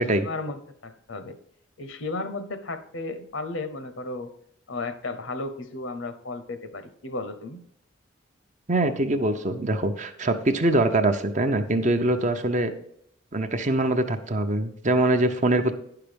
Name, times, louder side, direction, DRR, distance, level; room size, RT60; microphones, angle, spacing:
voice 1, 0.0-1.4 1.8-4.3 4.7-7.6, left 2 dB, 70° left, 10 dB, 0.9 m, -34 dB
voice 2, 8.7-12.7 13.3-15.7, right 2 dB, 35° right, 7 dB, 0.7 m, -23 dB
10.0 x 5.8 x 5.1 m, 0.72 s
head